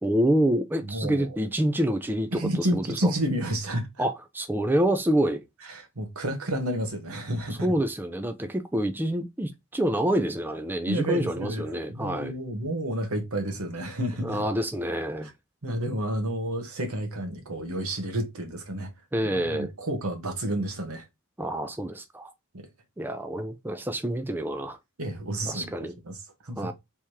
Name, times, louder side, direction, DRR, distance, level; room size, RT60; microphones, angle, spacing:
voice 1, 0.0-3.1 4.0-5.4 7.6-12.3 14.2-15.3 19.1-19.7 21.4-22.3 23.0-24.8 25.5-25.9 26.6-26.7, right 1 dB, 10° right, 0.4 m, -27 dB
voice 2, 0.8-1.3 2.3-3.9 5.6-7.7 10.9-14.4 15.6-18.9 19.3-21.1 22.5-22.7 25.0-26.2 26.4-26.7, right 1 dB, 80° right, 1.2 m, -30 dB
3.5 x 2.9 x 4.6 m
head